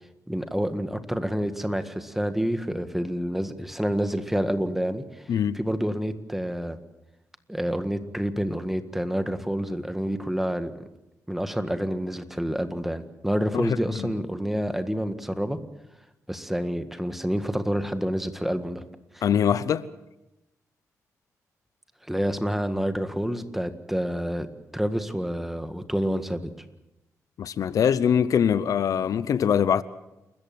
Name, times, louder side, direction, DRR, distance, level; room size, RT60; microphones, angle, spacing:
voice 1, 0.3-6.8 7.5-10.7 11.3-15.6 16.3-18.8 19.1-19.2 22.1-24.5 24.7-26.5, equal, 5° right, 1.7 m, -28 dB
voice 2, 13.5-14.1 19.2-19.9 27.4-29.8, left 8 dB, 75° left, 0.8 m, -23 dB
29.5 x 14.5 x 7.7 m
cardioid pair, 105°, 6 cm